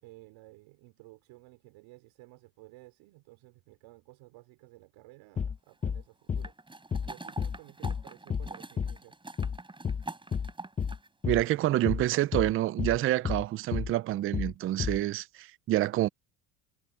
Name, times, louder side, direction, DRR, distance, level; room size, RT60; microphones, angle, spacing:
voice 1, 0.0-6.5 7.1-9.2, right 21 dB, 70° right, 3.2 m, -54 dB
sound 1, 5.4-5.6 5.8-6.0 6.3-6.5 6.9-7.1 7.4-7.6 7.8-8.0 8.3-8.5 8.8-9.0 9.4-9.6 9.8-10.0 10.3-10.5 10.8-11.0 11.2-11.4 11.9-12.1 12.3-12.5 12.8-13.0 13.2-13.4 13.7-13.9 14.3-14.5 14.8-15.0, left 7 dB, 15° left, 0.6 m, -31 dB
sound 2, 6.4-11.1 11.4-11.5, right 2 dB, 10° right, 4.5 m, -45 dB
voice 2, 11.3-16.1, right 15 dB, 30° right, 0.3 m, -27 dB
supercardioid pair, 115°, 48 cm